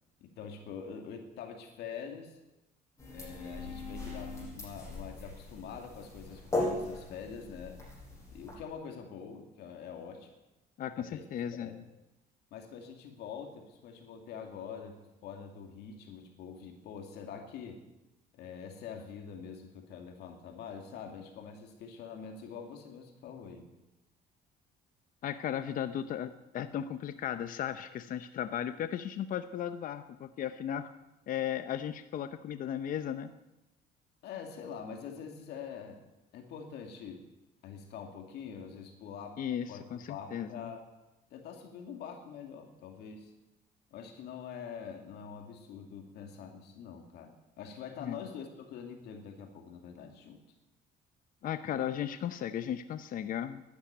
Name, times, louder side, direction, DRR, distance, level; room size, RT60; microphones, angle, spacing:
voice 1, 0.2-2.4 3.1-7.8 8.3-10.3 11.0-11.2 11.5-11.8 12.5-17.8 18.3-23.7 34.2-36.0 36.3-37.2 37.6-39.4 39.7-40.9 41.3-43.3 43.9-50.4, left 6 dB, 80° left, 3 dB, 2.4 m, -45 dB
sound 1, 3.0-8.6, left 2 dB, 15° left, 6.9 m, -38 dB
voice 2, 10.8-11.8 25.2-30.9 31.3-33.3 39.4-40.7 48.0-48.2 51.4-53.6, left 10 dB, 55° left, 10 dB, 0.7 m, -36 dB
11.5 x 11.5 x 9.2 m, 1.0 s
cardioid pair, 110°, 17 cm